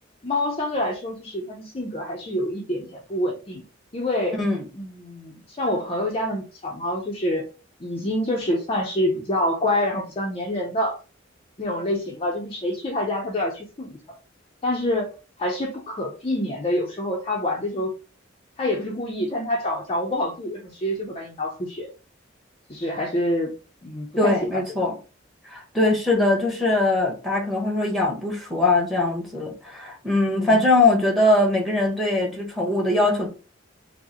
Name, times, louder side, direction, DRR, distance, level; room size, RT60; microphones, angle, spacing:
voice 1, 0.2-3.6 3.9-4.4 4.8-7.5 7.8-11.0 11.6-14.0 14.6-15.1 15.4-17.9 18.6-21.9 22.7-23.5 23.8-24.6 30.3-30.6, left 1 dB, 30° left, 0.5 m, -26 dB
voice 2, 24.2-24.9 25.5-33.3, left 2 dB, ahead, 1.0 m, -21 dB
4.6 x 2.0 x 2.8 m
head